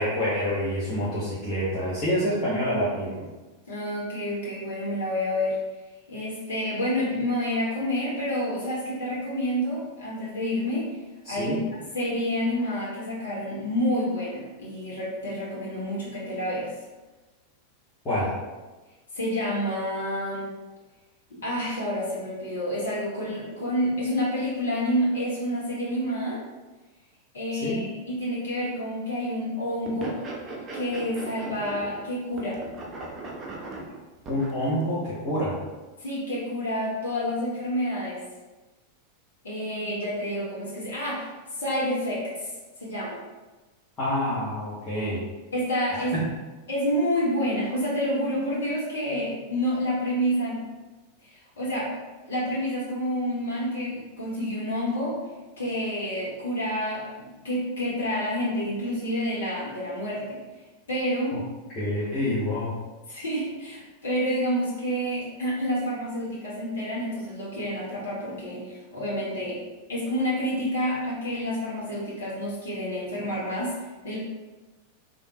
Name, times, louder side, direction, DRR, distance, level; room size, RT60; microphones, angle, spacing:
voice 1, 0.0-3.3 11.2-11.6 18.0-18.3 27.5-27.8 34.3-35.6 44.0-45.2 46.1-46.2 61.8-62.8, equal, 25° left, -12 dB, 1.1 m, -27 dB
voice 2, 3.7-5.6 6.1-11.6 11.9-16.7 19.1-20.5 21.4-26.4 27.3-30.2 30.7-32.6 36.0-38.2 39.4-42.5 42.8-43.2 45.5-46.1 46.7-50.6 51.2-52.0 52.3-55.2 55.6-60.4 60.9-61.4 63.1-69.6 69.9-74.2, equal, 65° left, -6 dB, 1.0 m, -29 dB
sound 1, 29.9-32.1 32.3-34.6, right 3 dB, 25° right, 0.7 m, -38 dB
3.6 x 2.6 x 2.7 m, 1.2 s
figure-of-eight pair, 90°, 0 cm